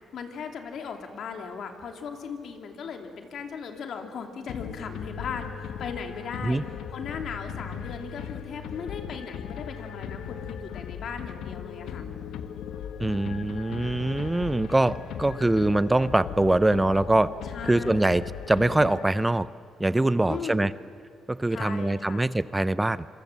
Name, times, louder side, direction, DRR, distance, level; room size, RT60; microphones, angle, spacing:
voice 1, 0.1-6.6 6.9-12.0 17.4-18.1 20.3-20.7 21.5-22.2, left 6 dB, 65° left, 4 dB, 2.8 m, -37 dB
sound 1, 4.5-19.5, left 8 dB, 80° left, 1.3 m, -38 dB
voice 2, 13.0-17.3 17.6-19.5 19.8-20.7 21.3-23.1, right 2 dB, 15° right, 16 dB, 0.5 m, -23 dB
26.5 x 23.5 x 7.3 m, 2.4 s
cardioid pair, 90°, 0 cm